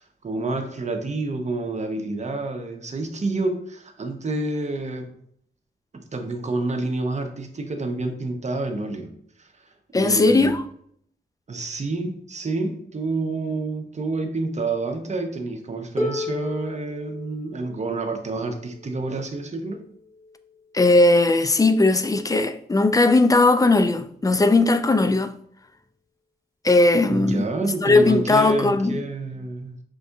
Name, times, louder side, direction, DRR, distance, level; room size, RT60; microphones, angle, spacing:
voice 1, 0.0-5.1 5.9-9.1 9.4-9.7 9.9-10.5 11.5-19.9 27.1-29.8, right 2 dB, 40° right, 0.8 m, -28 dB
voice 2, 9.9-10.6 20.7-25.3 26.6-27.4 27.8-29.0, left 2 dB, 20° left, 0.4 m, -18 dB
Harp, 16.0-21.8 22.8-22.9, left 1 dB, 15° right, 1.2 m, -35 dB
5.3 x 2.6 x 3.4 m
cardioid pair, 75°, 18 cm